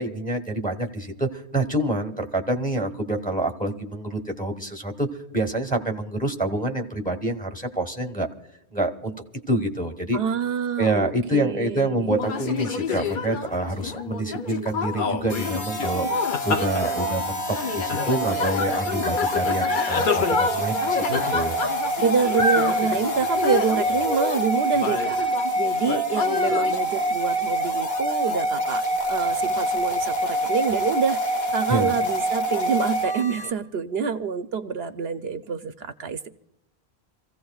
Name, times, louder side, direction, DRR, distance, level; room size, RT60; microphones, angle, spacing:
voice 1, 0.0-5.1 5.3-8.3 8.7-9.1 9.5-10.2 10.8-16.1 16.4-21.6 31.7-31.9, right 1 dB, 10° left, 4 dB, 1.2 m, -27 dB
voice 2, 10.1-12.2 22.0-36.3, right 6 dB, 70° right, 9 dB, 0.9 m, -27 dB
sound 1, 12.1-25.5 25.8-26.8, left 5 dB, 55° left, 0.8 m, -28 dB
sound 2, 15.3-33.5, right 1 dB, 70° left, 1.6 m, -26 dB
28.0 x 15.5 x 2.3 m, 0.83 s
omnidirectional pair, 1.1 m